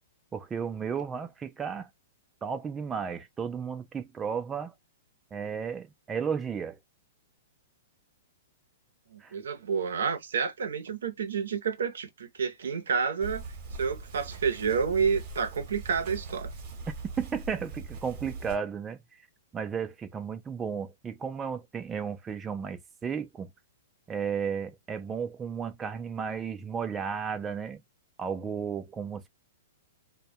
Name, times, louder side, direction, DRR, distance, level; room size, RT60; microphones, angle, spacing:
voice 1, 0.3-1.9 2.4-4.7 5.3-6.8 9.2-9.4 17.2-19.0 19.5-23.5 24.1-27.8 28.2-29.3, right 6 dB, 15° right, 0.3 m, -34 dB
voice 2, 9.1-13.4 13.8-16.5, right 6 dB, 85° right, 0.6 m, -29 dB
sound 1, 13.2-18.6, right 3 dB, 40° right, 0.8 m, -41 dB
2.1 x 2.1 x 2.7 m
hypercardioid pair, 155°, 0 cm